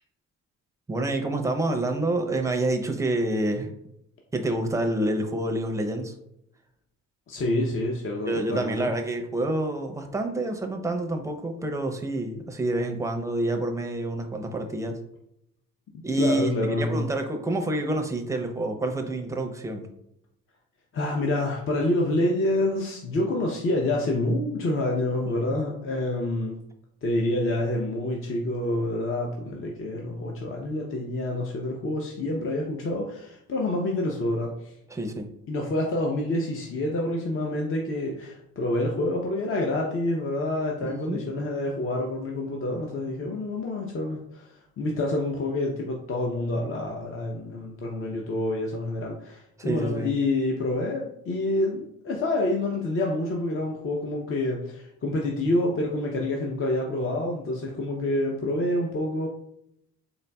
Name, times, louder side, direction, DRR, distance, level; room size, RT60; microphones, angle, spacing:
voice 1, 0.9-3.7 4.3-6.1 8.3-15.0 16.0-19.9 25.4-25.5 34.9-35.3 40.8-41.2 49.6-50.1, right 1 dB, 10° right, 4 dB, 0.5 m, -28 dB
voice 2, 7.3-8.9 16.1-17.1 20.9-26.6 27.0-34.7 35.5-59.3, left 1 dB, 45° left, 0 dB, 0.6 m, -27 dB
3.9 x 3.9 x 2.2 m, 0.79 s
cardioid pair, 90°, 30 cm